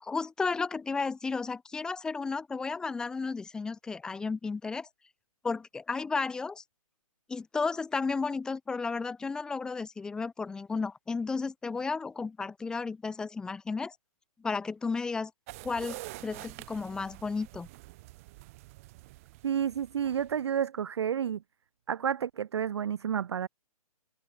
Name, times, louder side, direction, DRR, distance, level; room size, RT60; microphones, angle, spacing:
voice 1, 0.0-4.9 5.4-6.6 7.3-14.0 14.4-15.3 15.6-17.7, left 4 dB, 5° left, 0.7 m, -33 dB
sound 1, 15.5-20.4, right 21 dB, 25° right, 1.1 m, -47 dB
voice 2, 19.4-21.4 21.9-23.5, right 8 dB, 45° right, 0.4 m, -30 dB
hypercardioid pair, 160°, 19 cm